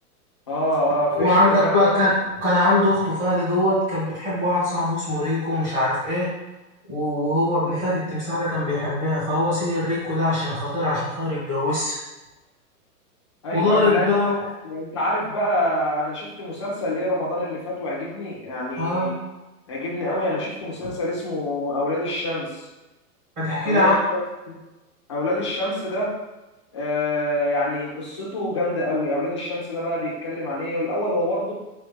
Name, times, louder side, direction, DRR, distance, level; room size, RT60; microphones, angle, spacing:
voice 1, 0.5-1.8 13.4-14.1 14.6-19.2 19.7-22.7 23.6-24.2 24.5-24.6 25.1-26.2 26.7-31.5, left 1 dB, 20° left, -5 dB, 0.5 m, -26 dB
voice 2, 1.1-2.2 2.4-6.3 6.9-11.9 13.5-14.5 18.8-19.2 20.8-20.9 23.4-23.9, left 1 dB, 15° right, -8 dB, 1.4 m, -22 dB
4.7 x 3.2 x 3.4 m, 1.1 s
hypercardioid pair, 175°, 46 cm